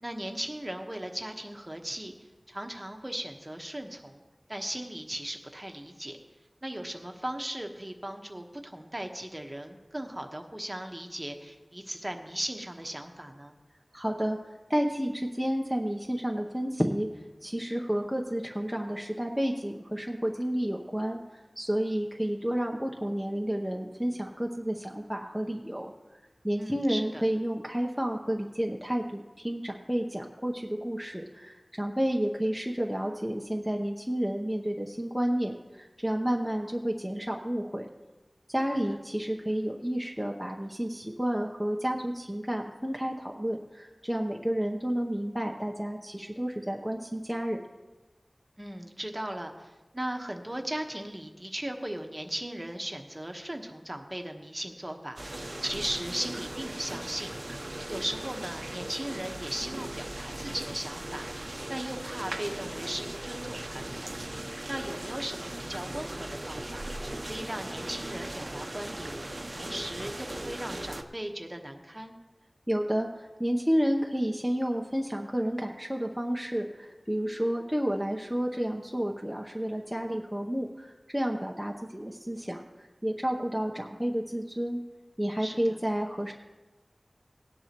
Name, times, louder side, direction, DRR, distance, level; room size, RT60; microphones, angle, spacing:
voice 1, 0.0-2.1 2.5-4.2 4.5-6.2 6.6-13.5 26.6-27.2 48.6-57.3 57.9-61.3 61.7-64.1 64.7-66.8 67.3-69.2 69.6-72.1 85.4-85.6, right 1 dB, 20° right, 4 dB, 1.2 m, -37 dB
voice 2, 13.9-14.4 14.7-17.1 17.4-25.9 26.4-37.9 38.5-47.6 72.7-84.8 85.2-86.3, equal, 5° right, 0 dB, 0.8 m, -31 dB
sound 1, 55.2-71.0, right 1 dB, 40° right, 0.8 m, -38 dB
17.5 x 10.0 x 3.0 m, 1.2 s
wide cardioid pair, 55°, 0 cm